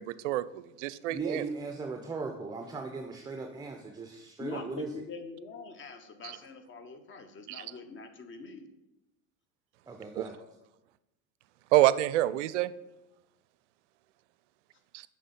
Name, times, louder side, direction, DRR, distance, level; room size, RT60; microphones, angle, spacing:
voice 1, 0.0-1.4 6.2-6.3 7.5-7.6 11.7-12.7 14.9-15.0, right 14 dB, 60° right, 17 dB, 0.5 m, -27 dB
voice 2, 1.1-4.9 9.9-10.4, right 4 dB, 10° right, 5 dB, 0.5 m, -38 dB
voice 3, 4.4-8.6, left 3 dB, 25° left, 8 dB, 1.0 m, -44 dB
7.3 x 5.5 x 5.3 m, 0.98 s
figure-of-eight pair, 80°, 43 cm